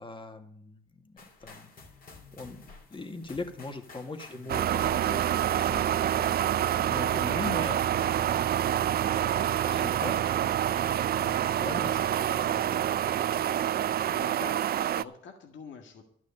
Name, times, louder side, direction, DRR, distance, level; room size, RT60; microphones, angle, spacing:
voice 1, 0.0-1.7 2.3-8.8 9.3-10.2 11.1-12.9 13.2-13.3, left 2 dB, 25° left, 6 dB, 1.9 m, -41 dB
sound 1, 1.2-7.0, left 3 dB, 45° left, 3.3 m, -51 dB
sound 2, 4.5-15.0, right 11 dB, 50° right, 0.4 m, -27 dB
voice 2, 6.9-7.4 14.1-16.1, left 5 dB, 70° left, 3 dB, 1.9 m, -46 dB
12.0 x 6.3 x 8.6 m, 0.65 s
cardioid pair, 90°, 20 cm